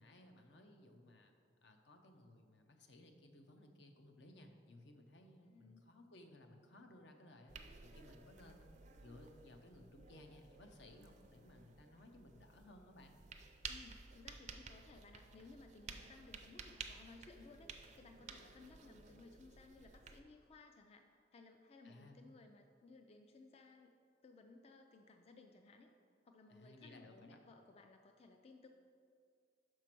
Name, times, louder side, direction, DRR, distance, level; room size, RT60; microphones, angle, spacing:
voice 1, 0.0-1.3 1.6-8.7 9.0-13.1 21.8-22.3 26.5-27.4, left 1 dB, 75° left, 4 dB, 0.7 m, -60 dB
voice 2, 5.4-5.9 13.7-23.9 24.2-25.9 26.2-28.7, left 3 dB, 35° left, 5 dB, 0.3 m, -60 dB
sound 1, 7.5-20.2, right 5 dB, 40° right, 0.4 m, -54 dB
5.9 x 4.6 x 6.0 m, 2.2 s
head